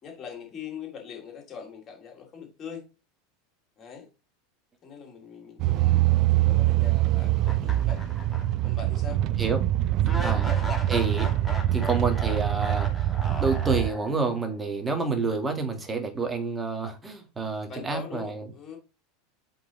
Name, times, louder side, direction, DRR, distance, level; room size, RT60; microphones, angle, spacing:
voice 1, 0.0-2.8 3.8-4.1 4.8-8.0 8.6-9.2 10.3-10.5 17.7-18.8, left 7 dB, 30° left, 2.7 m, -42 dB
sound 1, 5.6-13.9, right 14 dB, 45° right, 0.4 m, -24 dB
sound 2, 7.4-8.7 9.1-9.2 10.0-14.3, left 1 dB, 5° left, 2.2 m, -37 dB
voice 2, 10.9-11.3 11.7-13.1 13.4-18.5, right 4 dB, 15° right, 1.9 m, -28 dB
7.8 x 4.0 x 3.8 m
figure-of-eight pair, 80°, 0 cm